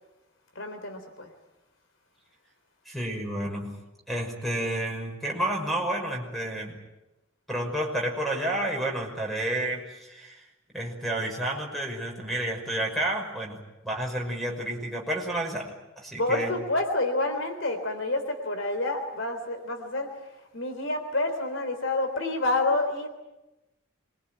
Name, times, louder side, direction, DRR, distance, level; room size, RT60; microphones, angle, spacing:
voice 1, 0.6-1.3 16.2-23.1, left 2 dB, 65° left, 6 dB, 3.7 m, -28 dB
voice 2, 2.9-3.7 4.1-6.8 7.5-10.4 10.7-13.6 13.8-16.5, right 1 dB, ahead, 1 dB, 5.8 m, -30 dB
25.5 x 22.0 x 9.4 m, 1.0 s
head